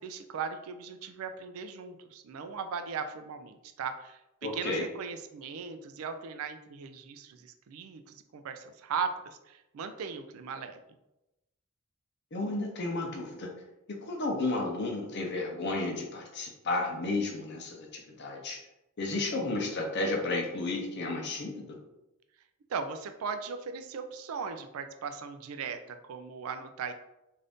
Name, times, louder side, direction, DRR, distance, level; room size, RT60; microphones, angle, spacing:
voice 1, 0.0-10.8 19.3-19.7 22.7-26.9, right 5 dB, 80° right, 8 dB, 0.4 m, -38 dB
voice 2, 4.4-4.8 12.3-13.5 14.0-18.6 19.0-21.8, left 2 dB, 55° left, 1 dB, 0.7 m, -32 dB
2.6 x 2.5 x 3.4 m, 0.92 s
head